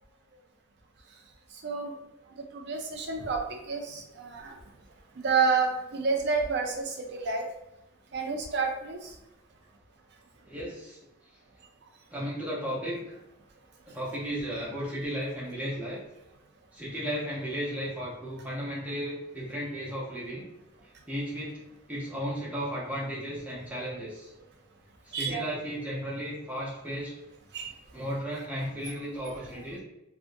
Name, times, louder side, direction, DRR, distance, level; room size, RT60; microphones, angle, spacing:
voice 1, 1.5-1.9 2.4-4.6 5.2-7.4 8.1-9.2 25.1-25.4 27.5-27.7, right 4 dB, 55° right, 2 dB, 0.4 m, -29 dB
voice 2, 10.5-11.0 12.1-13.2 13.9-16.0 16.7-20.5 21.1-21.6 21.9-24.3 25.0-27.1 27.9-29.8, equal, 5° right, -7 dB, 0.7 m, -34 dB
2.4 x 2.1 x 2.5 m, 0.89 s
head